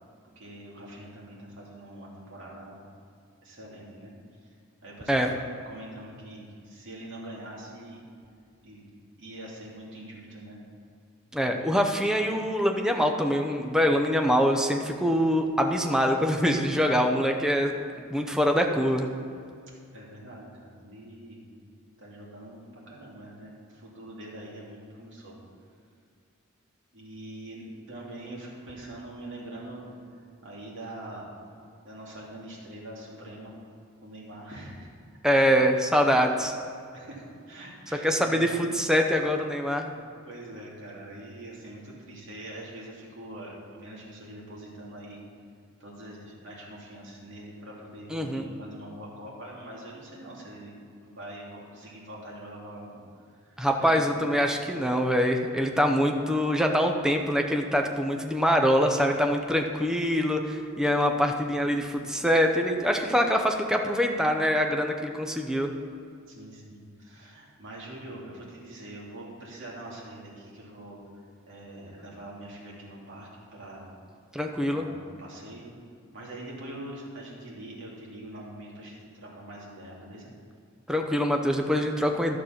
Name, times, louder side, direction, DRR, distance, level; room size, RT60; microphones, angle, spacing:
voice 1, 0.3-2.8 3.4-4.1 4.8-5.4 5.6-8.0 8.6-8.8 9.2-10.6 11.4-11.9 19.9-21.4 22.0-25.3 26.9-29.9 30.4-31.3 31.8-33.5 34.0-34.9 35.3-35.5 36.9-38.5 39.8-45.2 45.8-54.0 66.3-73.9 74.6-75.7 76.1-80.3, right 1 dB, 60° right, -5 dB, 2.8 m, -44 dB
voice 2, 11.3-17.7 18.1-19.1 35.2-36.5 38.0-39.9 48.1-48.5 53.6-65.7 74.3-74.9 80.9-82.4, equal, 5° right, 3 dB, 0.7 m, -24 dB
12.0 x 6.7 x 5.8 m, 2.3 s
head